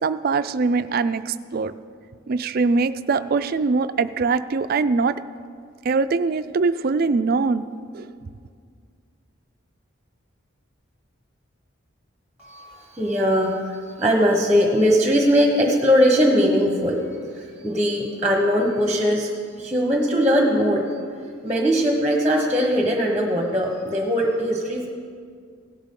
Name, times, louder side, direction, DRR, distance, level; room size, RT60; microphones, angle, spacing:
voice 1, 0.0-1.7 2.3-5.2 5.8-7.7 7.9-8.1, right 4 dB, 45° right, 12 dB, 0.4 m, -22 dB
voice 2, 12.4-17.0 17.3-20.9 21.4-24.9, equal, 5° right, 0 dB, 1.1 m, -20 dB
17.0 x 11.5 x 3.8 m, 2.1 s
head